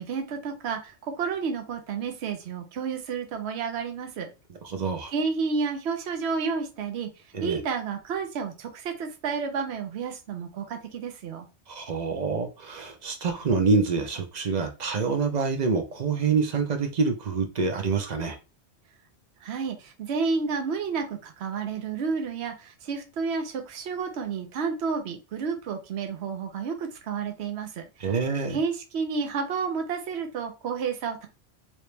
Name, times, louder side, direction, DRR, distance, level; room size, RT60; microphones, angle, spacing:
voice 1, 0.0-4.3 5.1-7.1 7.4-11.5 19.4-27.9 28.5-31.3, right 5 dB, 75° right, 1.0 m, -31 dB
voice 2, 4.6-5.1 7.3-7.6 11.7-18.4 28.0-28.6, right 4 dB, 45° right, 0.6 m, -26 dB
3.1 x 2.9 x 3.2 m
omnidirectional pair, 1.1 m